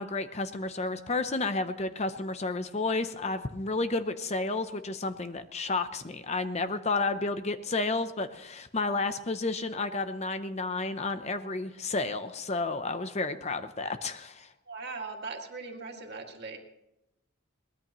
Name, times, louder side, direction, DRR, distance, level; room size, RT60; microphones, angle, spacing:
voice 1, 0.0-14.5, left 3 dB, 30° left, 10 dB, 0.6 m, -31 dB
voice 2, 14.7-16.6, right 4 dB, 50° right, 2 dB, 2.2 m, -39 dB
22.5 x 19.5 x 3.1 m, 0.90 s
head